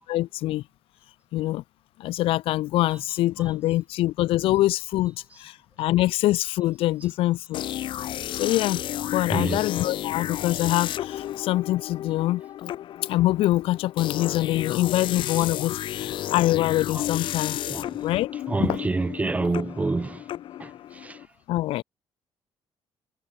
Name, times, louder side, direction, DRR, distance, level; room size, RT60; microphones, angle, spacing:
voice 1, 0.1-0.6 1.3-1.6 2.0-7.6 8.4-8.8 9.1-12.4 13.0-17.6 18.0-18.3 18.6-18.7 21.5-21.8, left 16 dB, 85° left, 0.9 m, -24 dB
sound 1, 7.5-21.3, left 12 dB, 65° left, 1.2 m, -32 dB
voice 2, 9.3-9.7 15.4-15.5 16.9-17.0 17.7-18.0 18.3-20.2 20.6-21.2, right 3 dB, 15° right, 1.3 m, -28 dB
cardioid pair, 140°, 9 cm